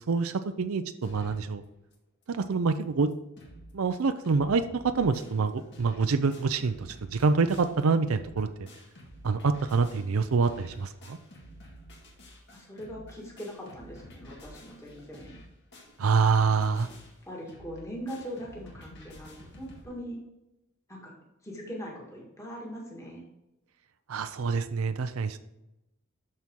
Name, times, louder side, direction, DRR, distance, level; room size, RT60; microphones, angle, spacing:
voice 1, 0.0-1.6 2.3-3.1 3.7-8.7 9.2-11.2 16.0-16.9 24.1-25.4, right 4 dB, 85° right, 9 dB, 0.5 m, -26 dB
sound 1, 1.0-1.5 1.9-2.0 2.2-2.3 2.8-2.9 3.1-3.7 4.0-19.8, equal, 55° left, 1.9 m, -50 dB
voice 2, 12.5-15.4 17.2-20.2 20.9-21.1 21.4-23.2, equal, 15° left, -3 dB, 1.8 m, -41 dB
12.0 x 4.3 x 3.7 m, 0.93 s
head